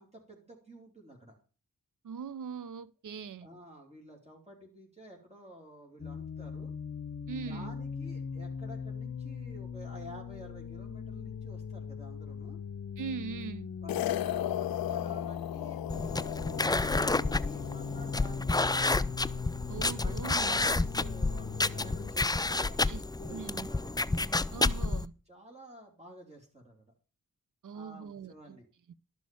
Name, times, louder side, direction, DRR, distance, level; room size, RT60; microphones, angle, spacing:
voice 1, 0.0-1.3 3.4-6.7 7.5-12.6 13.8-19.1 20.0-24.0 25.3-26.9 27.7-28.7, right 1 dB, 20° right, 3.2 m, -50 dB
voice 2, 2.0-3.5 7.3-7.7 13.0-13.7 19.7-20.6 22.9-23.0 23.3-23.7 24.5-25.1 27.6-28.6, right 6 dB, 60° right, 0.7 m, -41 dB
sound 1, 6.0-22.1, left 6 dB, 45° left, 0.9 m, -40 dB
sound 2, 13.9-18.3, left 13 dB, 90° left, 0.5 m, -36 dB
sound 3, 15.9-25.1, left 2 dB, 10° left, 0.5 m, -30 dB
12.5 x 6.2 x 7.0 m
cardioid pair, 55°, 35 cm